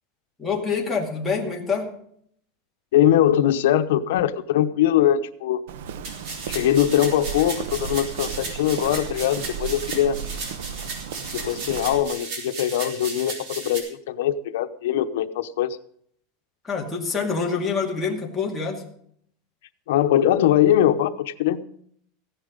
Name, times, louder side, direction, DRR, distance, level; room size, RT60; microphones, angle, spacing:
voice 1, 0.4-1.9 16.6-18.8, left 5 dB, 5° left, -3 dB, 2.3 m, -26 dB
voice 2, 2.9-5.6 6.5-10.2 11.3-15.8 19.9-21.6, left 11 dB, 85° left, 9 dB, 0.9 m, -21 dB
Walk footsteps, 5.7-12.0, right 7 dB, 85° right, 1.0 m, -35 dB
sound 1, 6.0-13.8, right 3 dB, 50° right, 4.1 m, -35 dB
15.5 x 10.5 x 5.2 m, 0.65 s
supercardioid pair, 165°, 0 cm